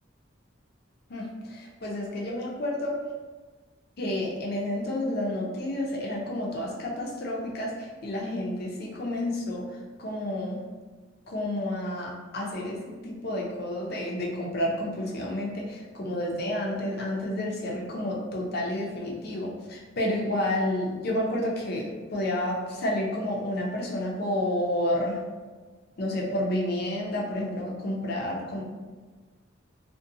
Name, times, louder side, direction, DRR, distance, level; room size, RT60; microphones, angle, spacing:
voice 1, 1.1-3.0 4.0-9.6 10.0-10.6 11.3-25.2 26.0-28.7, left 1 dB, 55° left, -2 dB, 0.5 m, -30 dB
2.5 x 2.1 x 2.6 m, 1.4 s
head